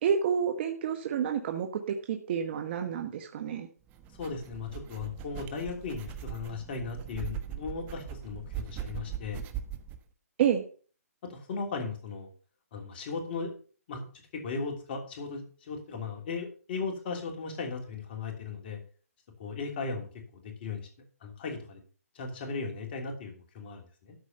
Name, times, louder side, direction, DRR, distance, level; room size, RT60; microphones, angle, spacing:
voice 1, 0.0-3.7 10.4-10.6, right 8 dB, 40° right, 5 dB, 1.2 m, -29 dB
sound 1, 3.9-10.0, right 10 dB, 20° right, 1.1 m, -40 dB
voice 2, 4.2-8.4 8.7-9.4 11.2-12.3 12.7-13.5 13.9-14.0 14.3-18.8 19.4-20.1 20.3-20.9 21.2-21.8 22.1-24.1, left 4 dB, 40° left, 2 dB, 3.0 m, -37 dB
13.0 x 4.9 x 6.8 m, 0.41 s
hypercardioid pair, 145°, 8 cm